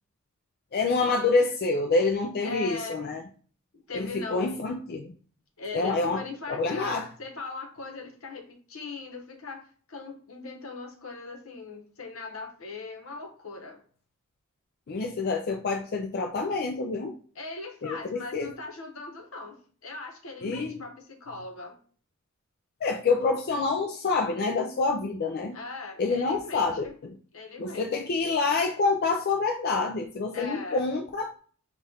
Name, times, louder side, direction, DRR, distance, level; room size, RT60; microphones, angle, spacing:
voice 1, 0.7-3.2 3.9-5.1 5.7-6.2 6.5-7.1 14.9-17.1 17.8-18.5 20.4-20.8 22.8-25.6 26.0-27.2 27.6-31.3, left 3 dB, 50° left, 3 dB, 0.4 m, -27 dB
voice 2, 2.4-3.2 3.9-4.6 5.6-13.8 17.3-21.8 25.5-27.0 27.3-28.1 30.3-30.9, left 3 dB, 75° left, 3 dB, 1.0 m, -40 dB
5.4 x 2.4 x 3.4 m, 0.43 s
head